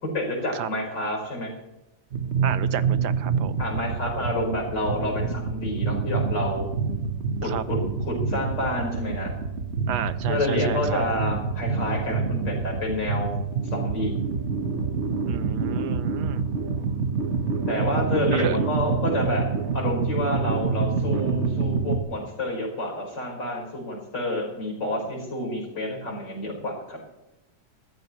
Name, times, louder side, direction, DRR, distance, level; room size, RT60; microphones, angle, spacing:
voice 1, 0.0-1.5 3.6-6.7 7.4-9.3 10.3-13.4 13.7-14.2 17.7-19.4 19.7-27.0, left 1 dB, 75° left, -1 dB, 5.2 m, -29 dB
sound 1, 2.1-22.0, right 5 dB, 45° right, 1.2 m, -27 dB
voice 2, 2.4-3.6 7.4-7.6 9.9-11.0 15.3-16.4 18.3-18.6, right 9 dB, 70° right, 13 dB, 1.3 m, -32 dB
20.0 x 14.5 x 3.1 m, 0.96 s
omnidirectional pair, 1.9 m